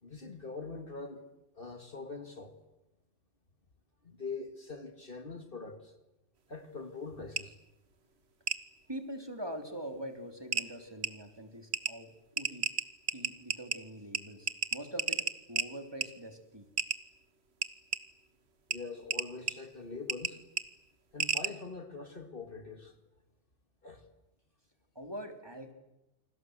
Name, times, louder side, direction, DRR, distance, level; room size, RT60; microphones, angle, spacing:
voice 1, 0.0-1.3 1.6-2.6 4.0-5.9 6.5-7.6 18.7-20.4 21.1-22.9 23.8-24.0, left 4 dB, 45° left, 2.3 m, -43 dB
sound 1, 7.4-7.5 8.5-8.6 9.9-10.0 10.5-10.7 11.0-11.1 11.7-11.9 12.4-13.8 14.1-14.2 14.5-15.7 16.0-16.1 16.8-17.0 17.6-18.0 18.7-18.8 19.1-19.5 20.1-20.3 20.6-20.7 21.2-21.5, right 6 dB, 60° right, 1.4 m, -31 dB
voice 2, 8.9-12.1 12.4-12.7 13.1-16.6 24.9-25.7, right 1 dB, 20° right, 3.2 m, -43 dB
29.0 x 26.0 x 8.0 m
omnidirectional pair, 1.3 m